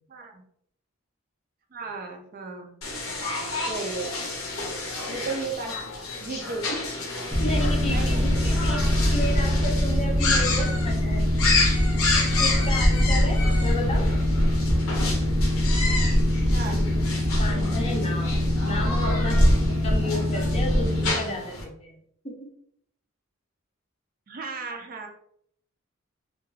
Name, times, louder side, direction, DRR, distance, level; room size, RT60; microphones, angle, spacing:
voice 1, 0.1-0.4 1.7-2.7 3.7-4.1 5.1-5.8 6.2-6.8 7.9-8.6 16.5-16.8 19.1-19.5 24.3-25.1, right 4 dB, 45° right, 3 dB, 0.4 m, -35 dB
sound 1, 2.8-21.6, left 3 dB, 80° left, 0.7 m, -31 dB
Boat Water vehicle, 7.3-21.1, left 1 dB, 10° right, 0.7 m, -23 dB
voice 2, 7.4-11.4 12.0-14.1 16.7-16.8 17.4-19.4 19.8-22.0 22.2-22.3, left 1 dB, 30° left, 0 dB, 0.5 m, -33 dB
2.2 x 2.2 x 3.1 m, 0.67 s
head